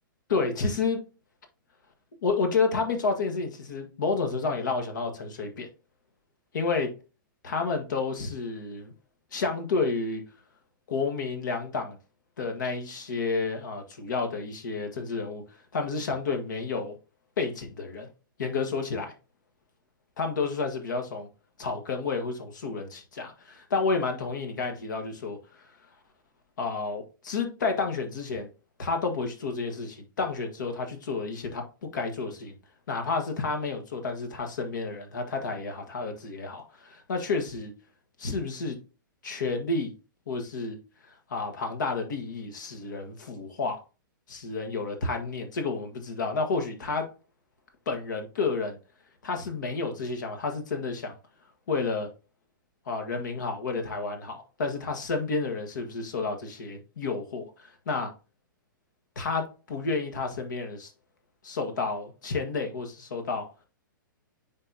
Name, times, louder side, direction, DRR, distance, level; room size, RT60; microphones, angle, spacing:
voice 1, 0.3-1.0 2.2-5.7 6.5-6.9 7.4-8.9 9.3-10.2 10.9-12.0 12.4-15.4 15.7-16.9 17.4-18.1 18.4-19.1 20.2-21.3 21.6-25.4 26.6-28.5 28.8-32.6 32.9-37.7 38.2-38.8 39.2-39.9 40.3-40.8 41.3-43.8 44.3-47.1 47.8-48.8 49.2-51.2 51.7-52.1 52.9-58.1 59.1-60.9 61.4-63.5, left 4 dB, 60° left, 1.6 m, -30 dB
9.6 x 4.1 x 2.8 m
figure-of-eight pair, 115°, 11 cm